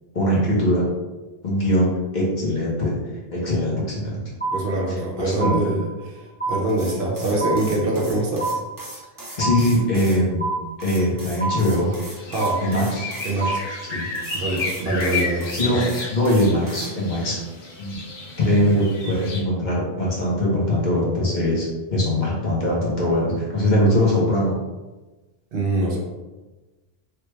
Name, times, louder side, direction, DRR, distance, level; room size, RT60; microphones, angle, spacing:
voice 1, 0.1-0.9 1.4-3.0 3.3-4.2 5.2-5.6 9.4-10.5 10.8-11.9 12.6-13.1 13.9-14.0 15.5-15.8 16.1-17.4 17.8-18.0 18.4-24.6, left 1 dB, 50° left, -5 dB, 1.0 m, -21 dB
sound 1, 4.4-5.1 5.4-6.1 6.4-7.1 7.4-8.1 8.4-9.1 9.4-10.1 10.4-11.1 11.4-12.1 12.4-13.1 13.4-14.1, right 3 dB, 15° left, 0.5 m, -28 dB
voice 2, 4.5-5.9 6.2-8.5 12.3-12.6 13.2-13.6 14.3-15.9 25.5-26.0, right 2 dB, 65° right, -2 dB, 0.9 m, -24 dB
sound 2, 6.7-10.2 10.8-13.3 14.1-16.9, right 1 dB, 25° right, 0.6 m, -39 dB
sound 3, 11.9-19.4, left 3 dB, 90° left, 1.1 m, -32 dB
3.3 x 2.2 x 3.1 m, 1.2 s
omnidirectional pair, 1.0 m